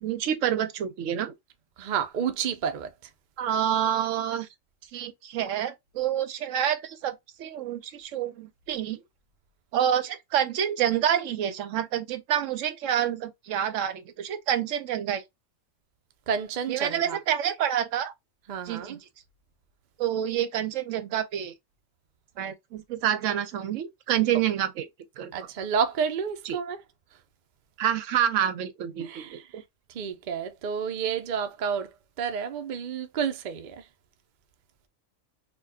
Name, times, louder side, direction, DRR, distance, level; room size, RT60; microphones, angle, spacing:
voice 1, 0.0-1.3 3.4-4.5 4.9-9.0 9.7-15.2 16.7-18.1 18.7-19.0 20.0-21.5 22.4-24.9 25.2-25.3 26.5-26.6 27.8-29.6, right 10 dB, 75° right, 0.9 m, -28 dB
voice 2, 1.8-2.9 16.3-17.2 18.5-19.0 25.3-26.8 29.0-29.4 29.9-31.9 32.2-33.8, right 7 dB, 55° right, 0.5 m, -30 dB
4.3 x 2.3 x 2.7 m
omnidirectional pair, 1.3 m